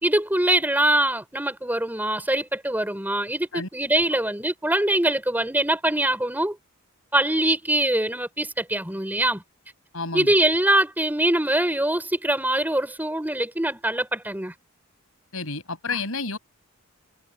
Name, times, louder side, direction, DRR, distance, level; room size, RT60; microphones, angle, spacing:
voice 1, 0.0-6.6 7.1-9.4 10.1-14.5, right 1 dB, 10° right, 4.8 m, -23 dB
voice 2, 9.9-10.3 15.3-16.4, left 4 dB, 70° left, 6.1 m, -30 dB
head